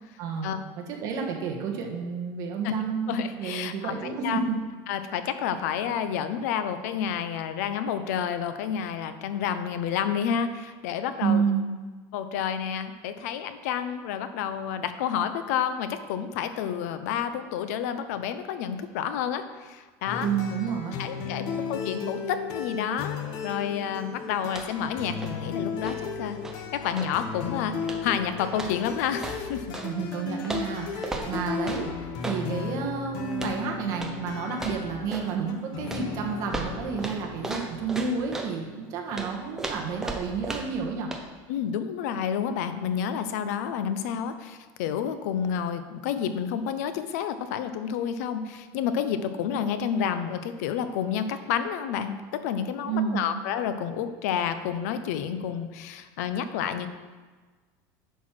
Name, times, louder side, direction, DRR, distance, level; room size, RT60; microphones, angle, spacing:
voice 1, 0.2-4.6 11.2-11.7 20.2-21.0 21.5-21.6 29.8-41.1 52.9-53.3, right 6 dB, 45° right, 1 dB, 1.4 m, -30 dB
voice 2, 2.6-3.9 4.2-4.4 4.9-11.4 12.1-20.3 21.0-29.7 41.5-56.9, left 8 dB, 80° left, 10 dB, 0.7 m, -30 dB
sound 1, 20.1-39.4, left 5 dB, 50° left, 1.0 m, -35 dB
sound 2, 24.5-24.9 25.1-27.2 27.8-28.2 28.5-29.9 30.4-32.5 33.3-33.6 33.9-34.2 34.5-35.4 35.9-38.6 39.1-40.8 41.1-41.3, right 2 dB, 5° right, 0.7 m, -36 dB
10.5 x 4.7 x 5.9 m, 1.4 s
cardioid pair, 170°, 8 cm